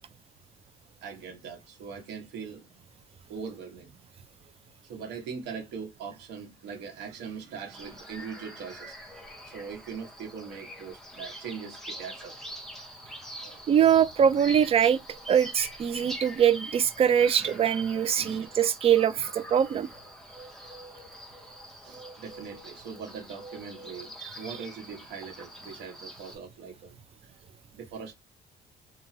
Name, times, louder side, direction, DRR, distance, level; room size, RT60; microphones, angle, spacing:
voice 1, 1.0-2.7 3.3-3.9 4.8-9.0 9.4-12.3 13.4-13.6 16.1-16.2 17.4-17.7 18.2-18.5 20.3-20.8 21.8-27.0 27.2-28.1, right 6 dB, 80° right, 1.1 m, -41 dB
sound 1, 7.7-26.3, right 1 dB, ahead, 0.9 m, -44 dB
voice 2, 13.7-15.0 15.3-19.9 24.2-24.3, right 9 dB, 35° right, 0.4 m, -23 dB
3.0 x 2.3 x 2.6 m
cardioid pair, 110°, 17 cm